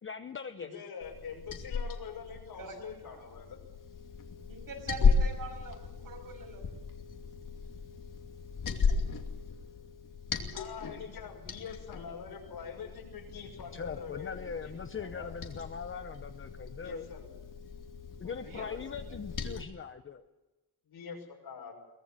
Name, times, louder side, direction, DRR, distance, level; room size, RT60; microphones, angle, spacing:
voice 1, 0.0-0.7 13.7-17.1 18.2-20.2, left 6 dB, 35° left, 8 dB, 0.8 m, -41 dB
voice 2, 0.6-3.6 10.5-15.3 16.7-17.3 18.2-18.8 20.8-21.7, left 6 dB, 80° left, 2 dB, 6.5 m, -44 dB
Liquid, 1.0-19.6, left 5 dB, 55° left, 2.7 m, -35 dB
voice 3, 4.5-6.7 18.4-18.6 19.0-19.1, right 4 dB, 60° right, 3 dB, 6.7 m, -44 dB
23.5 x 19.5 x 7.5 m, 1.1 s
wide cardioid pair, 150°, 37 cm